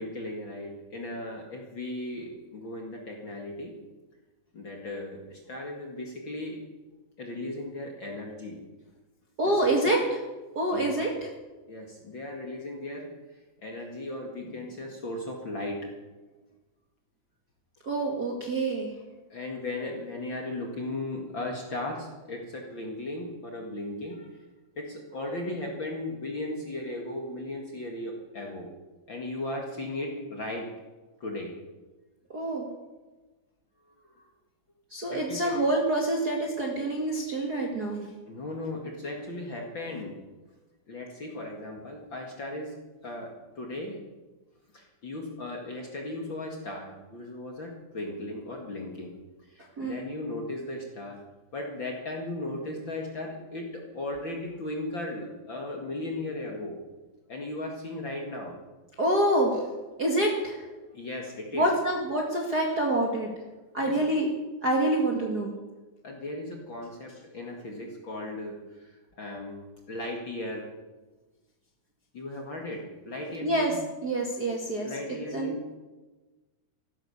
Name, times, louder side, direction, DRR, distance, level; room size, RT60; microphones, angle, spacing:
voice 1, 0.0-3.8 4.5-6.6 7.2-8.6 9.4-9.9 10.7-10.9 11.7-15.9 19.3-24.4 24.8-28.7 29.1-30.7 31.2-31.6 33.8-34.3 35.1-35.6 38.3-40.2 40.9-42.8 43.0-44.0 44.7-49.1 49.4-51.2 51.5-56.8 57.3-58.6 60.9-61.7 63.8-64.0 66.0-70.7 72.1-73.8 74.8-75.6, left 1 dB, 40° left, 0 dB, 2.2 m, -36 dB
voice 2, 9.4-10.0 10.6-11.1 17.8-18.9 32.3-32.7 34.9-38.1 49.8-50.0 59.0-59.7 60.0-60.6 61.5-63.3 63.7-64.3 64.6-65.5 73.4-73.7 74.0-74.9 75.3-75.5, right 1 dB, 35° right, -1 dB, 1.9 m, -26 dB
15.0 x 12.5 x 6.9 m, 1.2 s
omnidirectional pair, 4.2 m